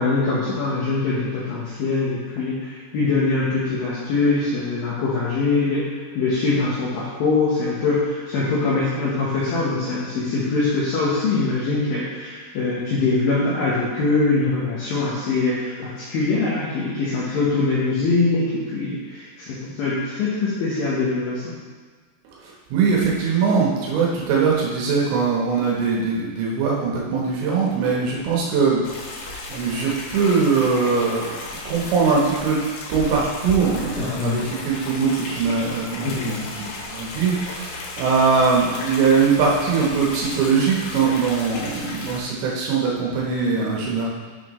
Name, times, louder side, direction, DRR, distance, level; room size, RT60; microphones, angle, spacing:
voice 1, 0.0-5.9 6.1-21.5 34.0-34.4 36.0-36.5, left 3 dB, 70° left, -7 dB, 2.2 m, -23 dB
voice 2, 22.4-31.4 31.7-32.6 32.9-44.1, right 5 dB, 85° right, -3 dB, 3.7 m, -21 dB
sound 1, 28.8-42.2, left 2 dB, 90° left, 3.8 m, -34 dB
8.4 x 6.6 x 3.1 m, 1.5 s
omnidirectional pair, 5.6 m